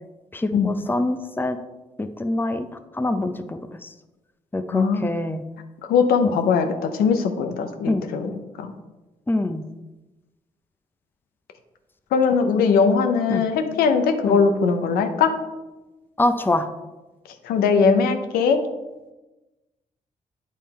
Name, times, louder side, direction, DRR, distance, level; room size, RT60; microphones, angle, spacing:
voice 1, 0.3-1.6 2.0-2.7 2.9-3.6 4.5-5.4 7.9-8.1 9.3-9.6 13.3-13.4 14.3-14.4 16.2-16.6, left 2 dB, 15° left, 9 dB, 0.6 m, -24 dB
voice 2, 4.7-5.0 5.9-8.7 12.1-15.3 17.4-18.6, left 5 dB, 85° left, 7 dB, 0.7 m, -20 dB
8.4 x 3.6 x 4.3 m, 1.1 s
supercardioid pair, 50°, 15 cm